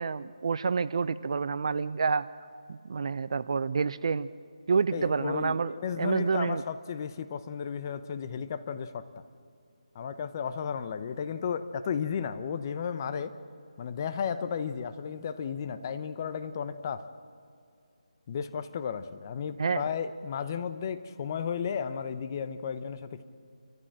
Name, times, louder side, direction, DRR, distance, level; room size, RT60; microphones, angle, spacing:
voice 1, 0.0-2.2 2.7-4.3 4.7-6.6 19.6-19.8, right 5 dB, 50° right, 15 dB, 0.7 m, -28 dB
voice 2, 4.9-9.1 9.9-13.4 13.8-17.1 18.3-23.2, left 7 dB, 30° left, 11 dB, 0.9 m, -34 dB
30.0 x 14.5 x 7.6 m, 2.4 s
figure-of-eight pair, 160°, 4 cm